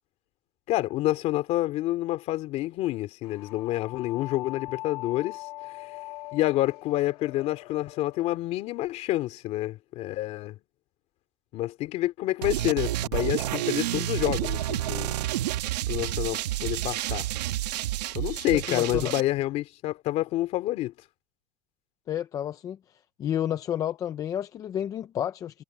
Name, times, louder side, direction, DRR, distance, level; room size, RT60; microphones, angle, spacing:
voice 1, 0.7-5.5 5.7-6.0 6.3-10.6 11.5-15.1 15.9-17.3 18.1-20.9, left 16 dB, 30° left, 2.9 m, -28 dB
sound 1, 3.2-8.4, left 19 dB, 70° left, 3.0 m, -41 dB
sound 2, 12.4-19.2, right 14 dB, 80° right, 2.3 m, -29 dB
voice 2, 18.7-19.1 22.1-25.6, left 10 dB, 15° left, 0.5 m, -31 dB
supercardioid pair, 165°, 21 cm